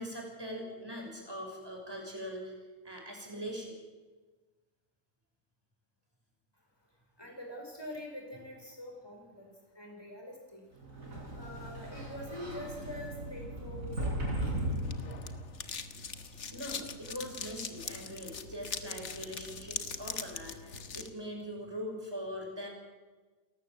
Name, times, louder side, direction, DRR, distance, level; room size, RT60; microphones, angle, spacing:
voice 1, 0.0-2.6 2.8-3.8 16.5-22.7, equal, 15° right, 0 dB, 6.1 m, -42 dB
voice 2, 7.2-10.6 11.3-14.4, left 1 dB, 15° left, 0 dB, 6.0 m, -45 dB
Sliding door, 10.8-15.5, right 1 dB, 85° right, 6.0 m, -37 dB
sound 1, 14.5-21.1, left 5 dB, 60° left, 1.6 m, -42 dB
30.0 x 14.0 x 7.8 m, 1.3 s
omnidirectional pair, 1.4 m